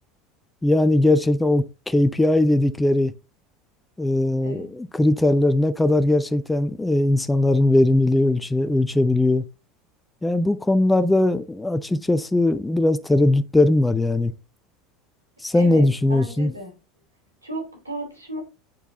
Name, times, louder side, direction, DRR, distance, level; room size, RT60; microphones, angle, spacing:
voice 1, 0.6-3.1 4.0-9.5 10.2-14.3 15.4-16.5, left 2 dB, 10° left, 0.6 m, -20 dB
voice 2, 4.4-4.7 15.5-15.8 16.1-16.7 17.4-18.4, right 1 dB, 85° right, 2.7 m, -34 dB
9.0 x 4.5 x 2.8 m
figure-of-eight pair, 75°, 0 cm